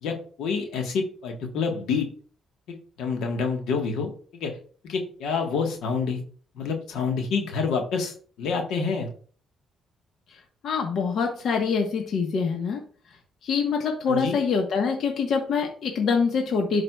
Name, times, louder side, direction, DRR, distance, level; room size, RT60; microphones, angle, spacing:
voice 1, 0.0-2.1 2.7-4.6 4.8-6.2 6.5-9.1 14.1-14.4, left 5 dB, 85° left, 3 dB, 1.5 m, -28 dB
voice 2, 10.6-12.8 13.4-16.8, left 5 dB, 65° left, 2 dB, 1.3 m, -25 dB
11.0 x 4.8 x 2.4 m, 0.43 s
cardioid pair, 90°, 0 cm